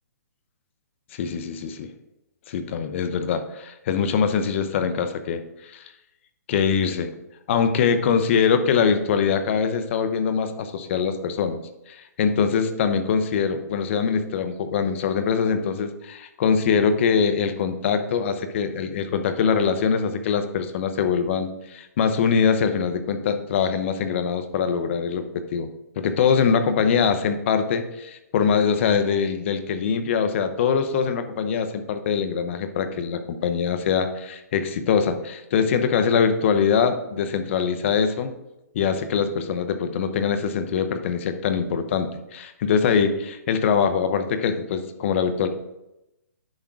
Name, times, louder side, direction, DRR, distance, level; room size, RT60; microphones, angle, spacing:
voice 1, 1.1-1.9 2.5-5.8 6.5-7.1 7.5-11.6 11.9-25.7 26.0-38.3 38.7-45.5, left 6 dB, 45° left, 9 dB, 0.9 m, -23 dB
10.5 x 3.7 x 4.7 m, 0.92 s
hypercardioid pair, 145°, 9 cm